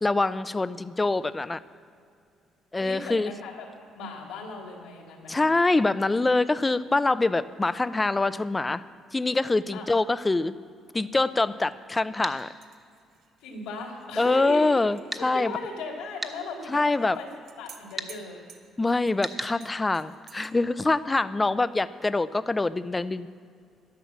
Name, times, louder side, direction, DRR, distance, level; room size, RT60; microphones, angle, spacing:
voice 1, 0.0-1.6 2.7-3.3 5.3-8.8 9.1-10.5 10.9-12.5 14.2-15.5 16.7-17.2 18.8-23.3, left 2 dB, 20° left, 15 dB, 0.6 m, -25 dB
voice 2, 2.8-3.6 3.9-5.4 9.7-9.9 13.4-14.8 15.3-17.3 17.6-18.4, left 3 dB, 85° left, 0 dB, 3.1 m, -37 dB
sound 1, 12.2-12.4 15.1-15.3 16.2-16.4 18.0-18.1 19.2-19.5, right 2 dB, 20° right, 1.4 m, -33 dB
sound 2, 12.4-15.2 15.4-15.5 16.9-20.5, right 7 dB, 70° right, 1.3 m, -53 dB
11.5 x 11.0 x 7.2 m, 2.3 s
supercardioid pair, 70°, 0 cm